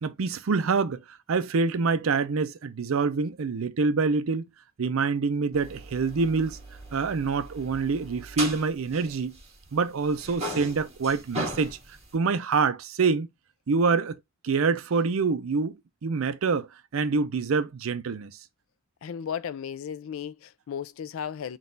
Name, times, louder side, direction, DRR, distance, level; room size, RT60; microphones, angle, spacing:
voice 1, 0.0-4.4 4.8-6.6 6.9-9.3 9.7-11.8 12.1-13.3 13.7-14.2 14.4-15.8 16.0-16.7 16.9-18.4, right 4 dB, 75° right, 0.5 m, -26 dB
sound 1, 5.5-9.8 10.0-12.1, right 1 dB, 30° right, 1.6 m, -38 dB
voice 2, 19.0-21.6, left 8 dB, 70° left, 0.4 m, -35 dB
3.9 x 2.4 x 3.8 m
head